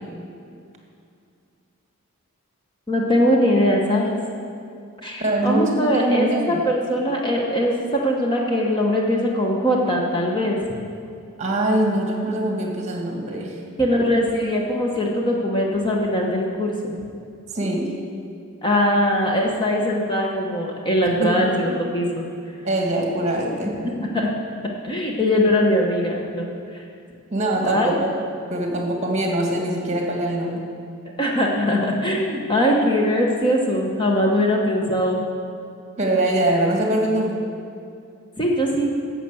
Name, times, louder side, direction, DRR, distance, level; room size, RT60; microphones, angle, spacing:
voice 1, 2.9-4.2 5.0-10.6 13.8-16.9 18.6-22.3 23.6-24.3 24.8-26.5 27.6-28.0 31.2-35.2 38.4-38.9, equal, 20° left, -1 dB, 1.0 m, -21 dB
voice 2, 5.2-6.6 11.4-13.5 17.5-17.9 21.2-21.7 22.6-23.7 27.3-28.1 28.5-30.6 36.0-37.3, right 1 dB, 30° right, 0 dB, 1.9 m, -23 dB
11.0 x 7.3 x 7.9 m, 2.4 s
head